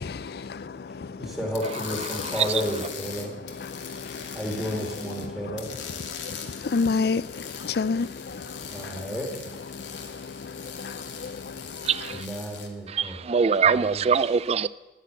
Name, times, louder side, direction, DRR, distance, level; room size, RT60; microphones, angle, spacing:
voice 1, 0.0-1.3 3.7-4.4 6.1-9.1 9.7-11.9, left 4 dB, 60° left, 0.4 m, -31 dB
voice 2, 1.0-3.4 4.0-5.7 8.6-9.6 12.1-14.1, equal, ahead, 2.3 m, -33 dB
sound 1, 1.5-5.3 5.6-12.7, left 7 dB, 85° left, 1.9 m, -41 dB
voice 3, 1.6-2.7 11.8-12.3 12.9-14.7, right 6 dB, 35° right, 0.3 m, -24 dB
10.0 x 9.8 x 9.1 m
head